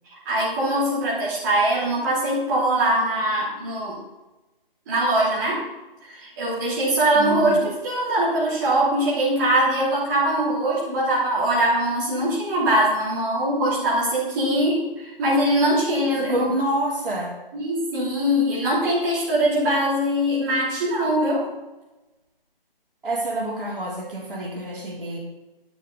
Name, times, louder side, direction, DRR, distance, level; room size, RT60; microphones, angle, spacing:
voice 1, 0.1-4.0 4.9-5.6 6.0-16.5 17.5-21.5, right 1 dB, 20° right, -8 dB, 3.2 m, -22 dB
voice 2, 7.1-7.7 16.2-17.4 23.0-25.2, right 1 dB, 65° right, -2 dB, 3.3 m, -28 dB
10.5 x 10.0 x 4.0 m, 1.1 s
figure-of-eight pair, 155°, 29 cm